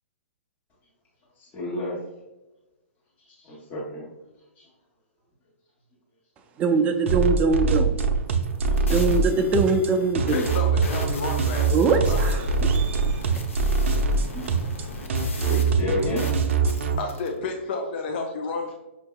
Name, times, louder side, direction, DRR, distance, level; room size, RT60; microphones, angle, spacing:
voice 1, 1.4-2.0 3.4-4.0 8.6-8.8 14.3-14.4 15.4-16.3, left 1 dB, 25° left, -5 dB, 1.2 m, -30 dB
voice 2, 6.6-8.0 8.9-10.5 11.7-13.3, right 4 dB, 20° right, 5 dB, 0.4 m, -23 dB
sound 1, 7.1-16.9, right 4 dB, 70° right, 0.5 m, -23 dB
sound 2, 8.3-17.3, left 2 dB, 85° left, 0.8 m, -40 dB
voice 3, 10.3-11.7 11.9-12.4 16.7-18.7, left 3 dB, 50° left, 2 dB, 0.5 m, -31 dB
5.8 x 2.6 x 2.3 m, 1.0 s
hypercardioid pair, 135°, 7 cm